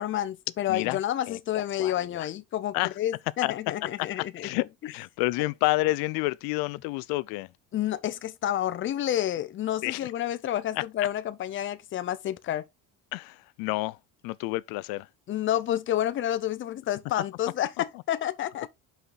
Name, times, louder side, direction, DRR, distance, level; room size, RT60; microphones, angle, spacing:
voice 1, 0.0-4.5 7.7-12.6 15.3-18.7, left 12 dB, 35° left, 0.7 m, -29 dB
voice 2, 1.3-2.3 2.7-2.9 3.4-3.5 4.2-7.5 9.8-10.1 10.7-10.8 13.1-14.0 14.2-15.1, left 20 dB, 85° left, 0.5 m, -29 dB
5.8 x 5.6 x 3.9 m
cardioid pair, 155°, 35 cm